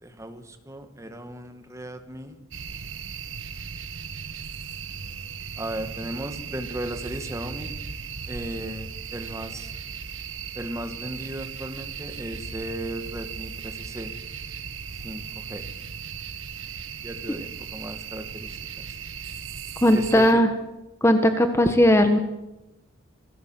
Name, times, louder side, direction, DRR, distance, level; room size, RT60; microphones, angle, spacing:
voice 1, 0.0-2.4 5.6-7.7 8.3-9.7 10.5-14.1 15.0-15.6 17.0-19.0 19.9-20.4, right 1 dB, 15° right, 7 dB, 2.1 m, -36 dB
sound 1, 2.5-20.3, right 6 dB, 75° right, 1.5 m, -37 dB
voice 2, 19.8-20.5 21.0-22.2, equal, 15° left, 7 dB, 1.4 m, -18 dB
27.0 x 19.0 x 7.7 m, 1.0 s
head